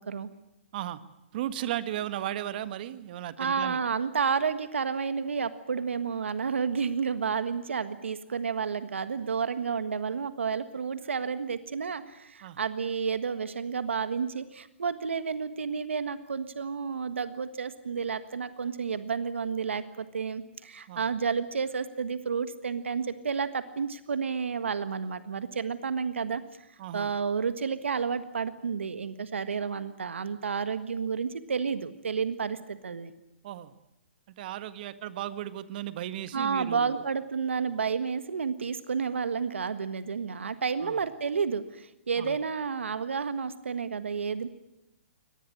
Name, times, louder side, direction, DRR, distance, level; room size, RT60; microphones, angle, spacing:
voice 1, 1.3-3.8 12.4-12.6 20.9-21.1 26.8-27.1 33.4-33.7 34.4-37.0 40.8-41.0 42.2-42.4, right 12 dB, 50° right, 12 dB, 1.7 m, -35 dB
voice 2, 3.4-26.4 26.9-33.1 36.3-44.5, right 6 dB, 85° right, 12 dB, 1.6 m, -31 dB
23.5 x 19.5 x 8.8 m, 0.89 s
hypercardioid pair, 135°, 6 cm